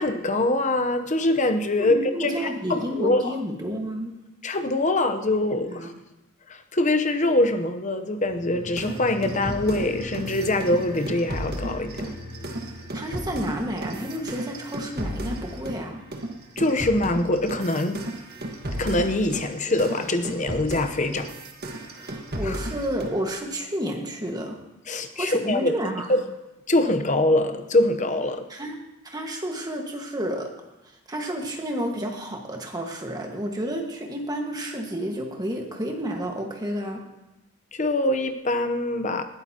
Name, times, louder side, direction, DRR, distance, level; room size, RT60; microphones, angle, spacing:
voice 1, 0.0-2.3 2.7-3.3 4.4-5.9 6.5-12.1 16.6-18.0 18.7-21.3 22.4-22.5 24.9-25.7 26.1-26.2 26.7-28.4 37.7-39.2, left 2 dB, 35° left, 8 dB, 0.8 m, -24 dB
voice 2, 1.8-4.2 5.5-5.9 12.9-16.0 22.0-24.6 24.9-26.1 28.5-28.8 29.0-30.5 31.1-37.0, equal, 15° right, 1 dB, 1.6 m, -30 dB
sound 1, 8.2-19.1 19.4-19.5, left 1 dB, 60° left, 5.7 m, -42 dB
sound 2, 8.8-15.8 16.1-23.2, right 1 dB, 45° right, 1.5 m, -34 dB
20.0 x 13.0 x 2.9 m, 0.95 s
head